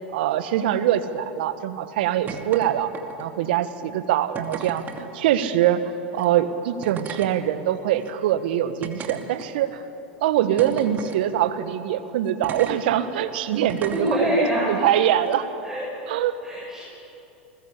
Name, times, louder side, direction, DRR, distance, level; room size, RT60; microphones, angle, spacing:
voice 1, 0.1-2.9 3.2-4.8 5.1-5.8 6.1-9.8 10.2-14.3 14.7-15.5 16.1-16.3, right 11 dB, 65° right, 12 dB, 1.6 m, -23 dB
sound 1, 2.3-2.7 2.9-3.4 4.3-5.0 6.1-6.3 6.8-7.3 8.0-8.1 8.8-9.7 10.6-11.2 12.4-12.7 13.7-14.1 15.2-15.4, right 6 dB, 35° right, 2.7 m, -35 dB
voice 2, 10.4-10.7 13.9-14.8 15.6-15.9 16.4-16.8, equal, 10° right, -6 dB, 7.2 m, -25 dB
27.5 x 21.0 x 8.5 m, 2.9 s
hypercardioid pair, 95°, 6 cm